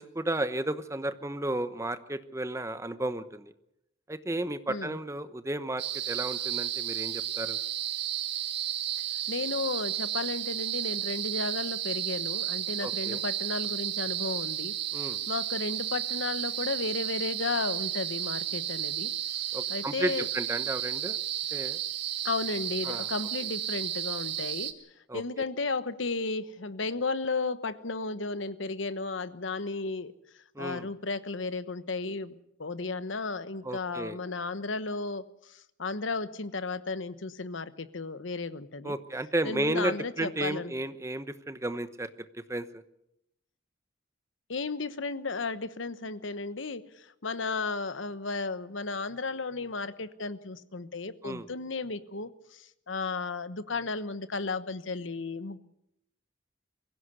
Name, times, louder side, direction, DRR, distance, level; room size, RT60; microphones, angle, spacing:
voice 1, 0.0-3.5 4.1-7.6 12.8-13.2 14.9-15.2 19.5-21.2 21.5-21.8 22.8-23.1 25.1-25.2 30.5-30.9 33.6-34.2 38.8-42.1 42.5-42.8 51.2-51.5, right 1 dB, 15° right, 12 dB, 1.0 m, -33 dB
sound 1, 5.8-24.7, right 11 dB, 60° right, 1.7 m, -33 dB
voice 2, 9.3-14.7 15.3-19.1 19.7-20.3 22.2-24.7 25.1-30.1 30.6-32.3 32.6-35.2 35.5-38.9 39.4-40.7 44.5-55.6, left 3 dB, 80° left, 13 dB, 1.1 m, -34 dB
23.0 x 16.0 x 8.2 m, 0.80 s
head